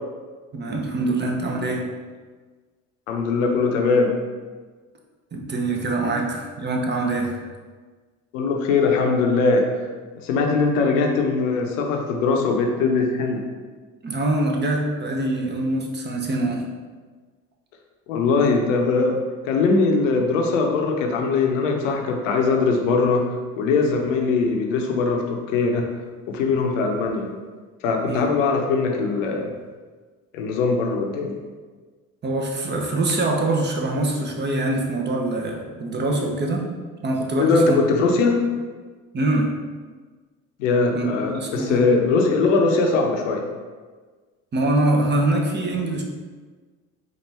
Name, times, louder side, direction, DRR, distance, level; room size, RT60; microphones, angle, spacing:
voice 1, 0.5-1.9 5.3-7.4 14.0-16.7 28.0-28.3 32.2-36.7 37.0-37.8 39.1-39.5 40.9-42.1 44.5-46.0, right 2 dB, 30° right, 0 dB, 0.7 m, -24 dB
voice 2, 3.1-4.1 8.3-9.7 10.2-13.4 18.1-19.2 19.4-23.2 23.5-25.9 26.3-27.3 27.8-29.5 30.3-31.4 37.4-38.4 40.6-43.4, left 4 dB, 90° left, 3 dB, 0.6 m, -21 dB
4.2 x 2.5 x 3.3 m, 1.4 s
hypercardioid pair, 70°, 37 cm